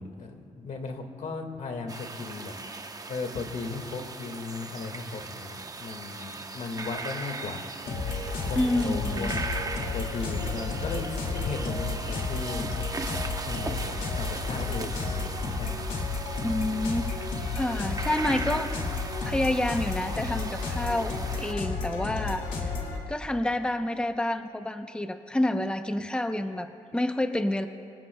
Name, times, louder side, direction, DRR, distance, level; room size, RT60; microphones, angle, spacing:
voice 1, 0.0-7.7 8.5-9.4 9.9-12.7 13.4-15.9, left 4 dB, 75° left, 4 dB, 1.9 m, -36 dB
sound 1, 1.9-21.5, right 3 dB, 30° right, 0.9 m, -39 dB
sound 2, 7.8-23.0, left 4 dB, 90° left, 2.4 m, -32 dB
voice 2, 8.6-9.3 16.4-17.3 17.6-18.8 19.2-22.7 23.1-27.7, left 1 dB, 5° left, 7 dB, 0.8 m, -28 dB
24.0 x 19.0 x 2.3 m, 2.5 s
cardioid pair, 75°, 13 cm